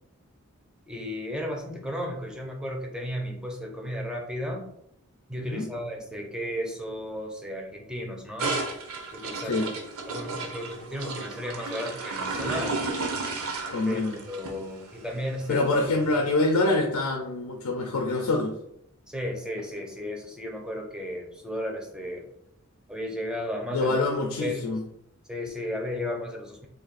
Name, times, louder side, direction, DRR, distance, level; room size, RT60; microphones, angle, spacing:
voice 1, 0.9-4.7 5.3-8.6 9.1-9.7 10.0-12.8 13.9-15.6 19.1-22.3 22.9-24.0 24.4-24.7 25.3-26.7, equal, 5° right, 1 dB, 0.4 m, -34 dB
voice 2, 5.4-5.7 9.4-9.7 13.7-14.2 15.5-18.6 23.7-24.8, left 2 dB, 90° left, 1 dB, 0.5 m, -25 dB
sound 1, 8.4-16.6, right 3 dB, 85° right, 0.7 m, -33 dB
2.7 x 2.5 x 3.9 m, 0.77 s
head